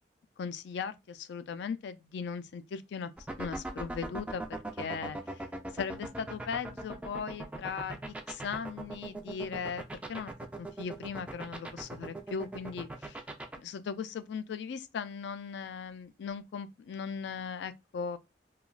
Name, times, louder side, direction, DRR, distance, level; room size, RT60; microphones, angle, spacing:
voice 1, 0.4-3.1 3.4-4.4 4.7-5.5 5.7-9.8 10.1-10.3 10.6-13.2 13.6-18.2, left 6 dB, 70° left, 0.3 m, -38 dB
sound 1, 3.2-13.6, right 2 dB, 10° right, 0.3 m, -39 dB
3.2 x 2.3 x 2.4 m
head